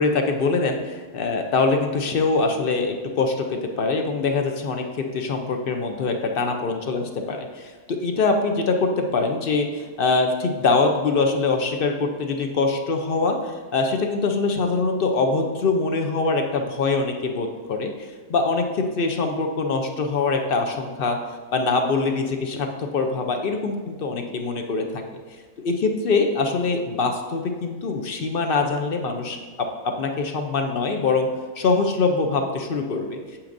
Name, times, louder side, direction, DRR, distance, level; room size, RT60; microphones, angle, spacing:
voice 1, 0.0-17.9 18.3-21.2 21.5-25.2 25.6-31.3 31.6-33.4, left 3 dB, 60° left, 4 dB, 0.6 m, -23 dB
8.6 x 7.9 x 2.6 m, 1.4 s
omnidirectional pair, 1.6 m